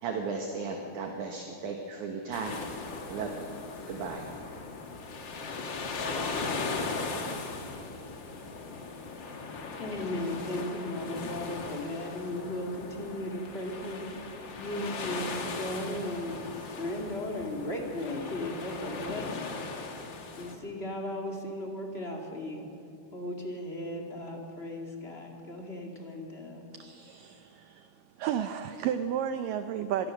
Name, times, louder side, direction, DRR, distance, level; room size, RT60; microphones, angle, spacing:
voice 1, 0.0-2.6 3.1-3.5 3.9-4.3, right 4 dB, 60° right, 3 dB, 2.4 m, -35 dB
sound 1, 2.3-20.5, left 4 dB, 90° left, 1.0 m, -38 dB
voice 2, 9.8-16.4 16.7-19.9 20.4-22.7 23.1-26.7, left 1 dB, 25° left, 1 dB, 1.5 m, -36 dB
voice 3, 26.8-27.9 28.2-30.1, right 9 dB, 80° right, 9 dB, 1.9 m, -32 dB
25.0 x 19.5 x 6.4 m, 2.8 s
omnidirectional pair, 4.8 m